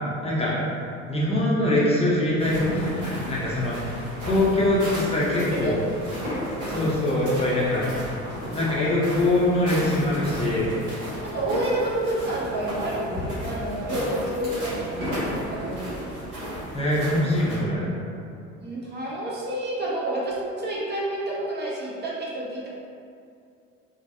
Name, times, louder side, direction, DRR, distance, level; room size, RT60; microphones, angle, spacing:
voice 1, 0.2-0.5 1.1-5.8 6.7-8.1 8.5-10.7 16.7-17.9, left 1 dB, 15° left, -7 dB, 0.6 m, -23 dB
sound 1, 2.4-17.6, equal, 50° right, 1.4 m, -35 dB
Fireworks, 4.2-5.3 6.2-9.7 13.1-14.6 15.0-19.5 19.8-19.9 20.4-20.6, left 1 dB, 90° right, 0.8 m, -37 dB
voice 2, 11.2-15.1 15.5-15.9 18.6-22.7, right 1 dB, 25° right, -5 dB, 0.6 m, -29 dB
3.2 x 2.1 x 2.5 m, 2.4 s
figure-of-eight pair, 50°, 38 cm